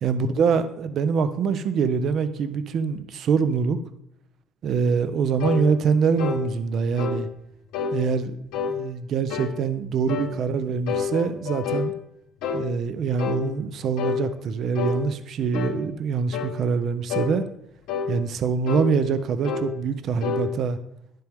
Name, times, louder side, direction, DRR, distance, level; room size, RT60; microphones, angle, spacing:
voice 1, 0.0-3.8 4.6-7.3 7.9-8.4 8.7-11.9 12.5-17.4 18.1-20.8, right 6 dB, 50° right, 12 dB, 0.6 m, -24 dB
sound 1, 5.4-5.6 6.2-6.4 7.0-7.2 7.7-8.0 8.5-8.8 9.3-9.6 10.1-10.3 10.9-11.9 12.4-12.7 13.2-13.4 14.0-14.2 14.7-15.0 15.5-15.8 16.3-16.6 17.1-17.3 17.9-18.1 18.7-18.9 19.4-19.7 20.2-20.4, left 6 dB, 90° left, 1.4 m, -28 dB
10.5 x 7.6 x 3.5 m, 0.78 s
cardioid pair, 150°, 0 cm